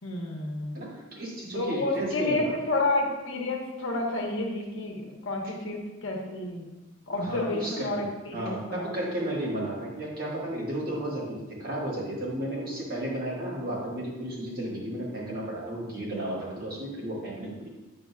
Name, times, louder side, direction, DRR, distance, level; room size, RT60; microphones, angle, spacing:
voice 1, 0.0-0.8 1.5-6.7 7.1-8.9, left 2 dB, 65° left, 0 dB, 1.0 m, -30 dB
voice 2, 0.7-2.5 7.2-8.0 8.3-17.7, right 1 dB, 45° right, -6 dB, 1.8 m, -33 dB
8.5 x 5.2 x 2.3 m, 1.1 s
head